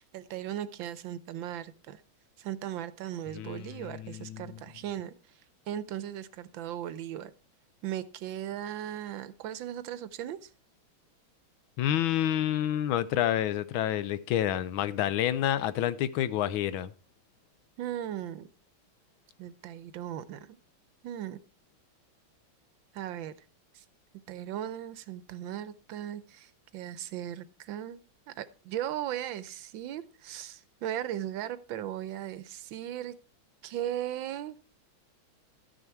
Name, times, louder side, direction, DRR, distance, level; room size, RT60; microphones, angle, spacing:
voice 1, 0.0-2.0 2.4-5.1 5.7-7.3 7.8-10.5 17.8-18.5 19.4-20.6 21.0-21.4 22.9-23.3 23.7-23.8 24.3-28.0 28.3-33.2 33.6-34.6, right 11 dB, 75° right, 1.4 m, -37 dB
voice 2, 3.3-4.6 11.8-16.9, left 11 dB, 80° left, 1.4 m, -29 dB
12.5 x 6.4 x 4.5 m
omnidirectional pair, 2.2 m